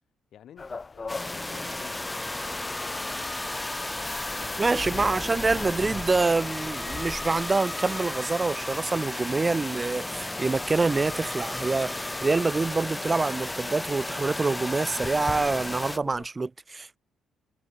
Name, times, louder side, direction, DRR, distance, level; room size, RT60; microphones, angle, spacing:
voice 1, 0.3-4.1 4.4-5.2, left 10 dB, 70° left, 5.5 m, -50 dB
sound 1, 0.6-16.3, left 4 dB, 30° left, 1.0 m, -43 dB
sound 2, 1.1-16.0, left 2 dB, 15° left, 1.9 m, -34 dB
voice 2, 4.6-17.0, right 3 dB, 25° right, 0.7 m, -26 dB
cardioid pair, 90°, 0 cm